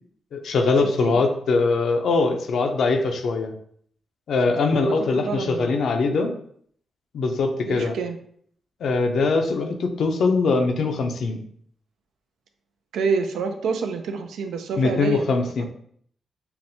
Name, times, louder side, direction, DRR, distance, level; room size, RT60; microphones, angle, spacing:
voice 1, 0.3-3.5 4.3-6.3 7.1-8.0 8.8-11.4 14.8-15.6, left 3 dB, 75° left, 4 dB, 0.6 m, -22 dB
voice 2, 4.6-5.8 7.7-8.2 12.9-15.6, right 5 dB, 90° right, 6 dB, 0.4 m, -28 dB
5.7 x 2.1 x 2.7 m, 0.62 s
cardioid pair, 70°, 0 cm